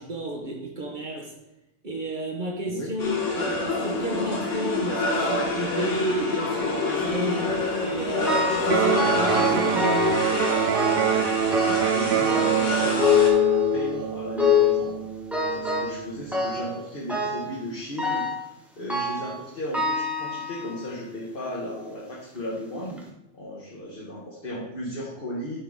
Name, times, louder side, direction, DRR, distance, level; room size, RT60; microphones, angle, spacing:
voice 1, 0.0-1.3 1.8-7.5 7.8-10.2, right 2 dB, 40° right, 0 dB, 1.1 m, -31 dB
sound 1, 3.0-13.3, left 2 dB, 75° left, 1.6 m, -27 dB
sound 2, 8.3-8.7 9.0-10.3 10.7-11.2 11.5-12.0 12.3-14.0 14.4-14.8 15.3-16.0 16.3-16.8 17.1-17.5 18.0-18.4 18.9-19.3 19.7-20.8 21.4-21.5 22.4-22.5 22.9-23.0, left 5 dB, ahead, 0.9 m, -25 dB
Electric guitar, 8.6-16.6, right 9 dB, 60° right, 0.6 m, -26 dB
voice 2, 11.5-14.9 15.5-18.3 18.7-23.0 23.3-25.6, left 1 dB, 45° left, -4 dB, 1.3 m, -35 dB
10.0 x 3.7 x 3.6 m, 0.92 s
omnidirectional pair, 1.3 m